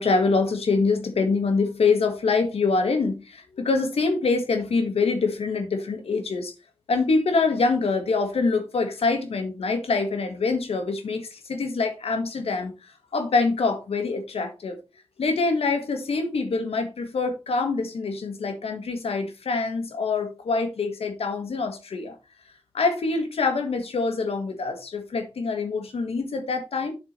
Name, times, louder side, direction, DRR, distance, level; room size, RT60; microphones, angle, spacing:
voice 1, 0.0-6.5 6.9-14.8 15.2-22.2 22.7-26.9, left 4 dB, 90° left, 1.9 m, -25 dB
8.5 x 7.2 x 3.3 m
cardioid pair, 45°, 10 cm